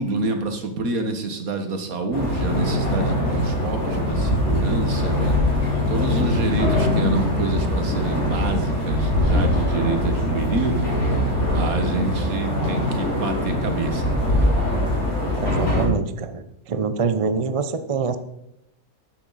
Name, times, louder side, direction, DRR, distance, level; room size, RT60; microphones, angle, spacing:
voice 1, 0.0-5.4 5.9-10.9 11.5-14.5, right 3 dB, 70° right, 6 dB, 1.9 m, -27 dB
sound 1, 2.1-15.9, left 1 dB, 70° left, 4.5 m, -22 dB
voice 2, 15.4-18.2, right 5 dB, 40° right, 10 dB, 0.5 m, -25 dB
12.5 x 9.9 x 4.1 m, 0.80 s
omnidirectional pair, 1.6 m